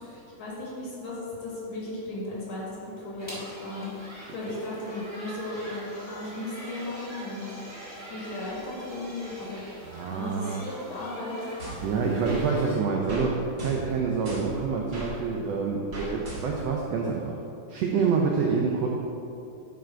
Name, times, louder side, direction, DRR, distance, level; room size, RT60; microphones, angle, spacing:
voice 1, 0.0-3.9 4.3-7.5 8.1-9.6 10.1-11.4, left 2 dB, 55° left, -5 dB, 2.7 m, -36 dB
sound 1, 3.2-12.7, right 1 dB, 15° left, 1.1 m, -43 dB
voice 2, 9.9-10.6 11.8-17.4 17.7-18.9, right 5 dB, 85° right, -1 dB, 1.4 m, -27 dB
sound 2, 11.6-12.5 13.1-13.3 13.6-15.1 15.9-16.7, right 1 dB, 30° right, 1.5 m, -38 dB
10.0 x 5.1 x 4.4 m, 2.7 s
omnidirectional pair, 3.8 m